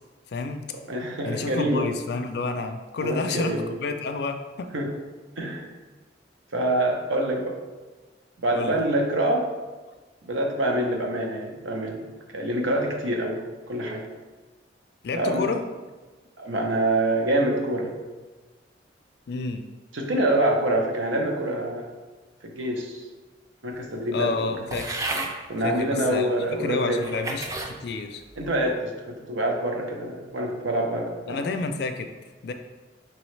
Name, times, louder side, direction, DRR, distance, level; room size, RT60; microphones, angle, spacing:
voice 1, 0.3-0.6 1.2-4.7 8.5-8.8 15.0-15.6 19.3-19.7 24.1-25.1 25.6-28.2 31.3-32.1 32.4-32.5, left 4 dB, 55° left, 7 dB, 0.4 m, -30 dB
voice 2, 0.9-1.8 3.0-3.7 4.7-4.9 5.4-5.7 6.5-7.6 8.4-9.5 10.2-12.0 12.3-14.1 15.1-15.5 16.4-18.0 19.9-21.9 22.4-23.0 23.6-24.4 25.5-27.0 28.4-31.4, right 1 dB, 85° right, 1 dB, 0.8 m, -26 dB
sound 1, 24.7-25.3 26.1-26.2 26.9-27.7 28.3-28.7, right 2 dB, 15° right, 0.3 m, -32 dB
5.4 x 3.1 x 3.2 m, 1.3 s
head